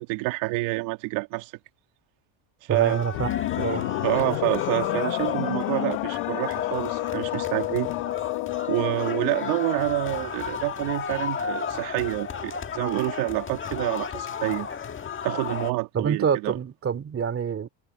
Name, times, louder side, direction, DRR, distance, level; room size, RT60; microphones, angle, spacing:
voice 1, 0.1-1.5 2.6-3.0 4.0-7.9 8.7-14.7 15.2-16.6, right 23 dB, 85° right, 2.2 m, -28 dB
sound 1, 2.7-15.7, left 6 dB, 25° left, 1.6 m, -34 dB
voice 2, 2.7-3.8 15.9-17.7, right 7 dB, 25° right, 2.8 m, -27 dB
sound 2, 3.1-9.6, left 21 dB, 70° left, 1.1 m, -29 dB
cardioid pair, 150°, 48 cm